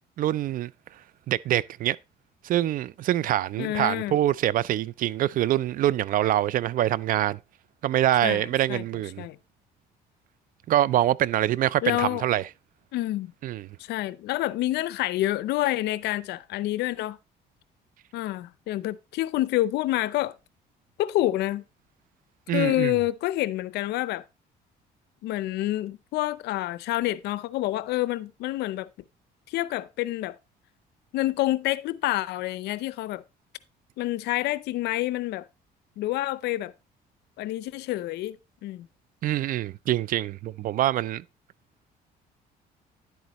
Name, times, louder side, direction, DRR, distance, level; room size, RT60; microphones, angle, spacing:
voice 1, 0.2-0.7 1.3-2.0 2.4-7.4 7.8-9.2 10.7-12.4 13.4-13.7 22.5-22.9 39.2-41.2, right 13 dB, 55° right, 0.4 m, -25 dB
voice 2, 3.6-4.1 8.2-8.8 9.2-9.4 11.8-12.2 12.9-13.3 13.8-17.2 18.1-20.4 21.0-21.6 22.5-24.2 25.2-28.9 29.5-30.4 31.1-33.2 34.0-35.5 36.0-36.7 37.4-38.9, left 16 dB, 80° left, 0.6 m, -28 dB
10.5 x 8.1 x 3.0 m
cardioid pair, 110°, 17 cm